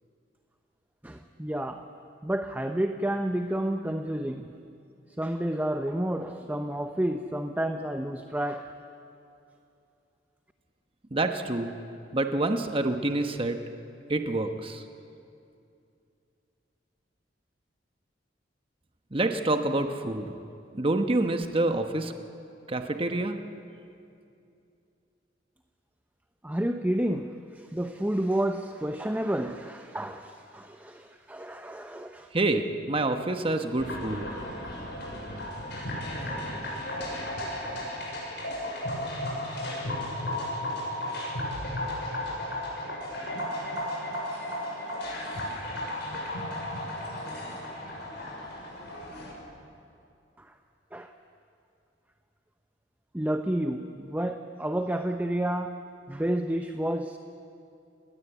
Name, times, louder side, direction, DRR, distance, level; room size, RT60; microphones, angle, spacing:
voice 1, 1.0-1.9 2.2-4.5 5.2-8.7 26.4-32.3 50.4-50.5 50.9-51.1 53.1-55.8 56.1-57.2, right 1 dB, 10° right, 6 dB, 0.7 m, -30 dB
voice 2, 11.1-11.7 12.1-13.6 14.1-14.8 19.1-20.3 20.7-22.1 22.7-23.4 32.3-34.3, right 2 dB, 30° right, 6 dB, 1.1 m, -27 dB
sound 1, 33.8-49.3, left 1 dB, 65° left, 7.0 m, -34 dB
28.0 x 20.0 x 8.2 m, 2.6 s
head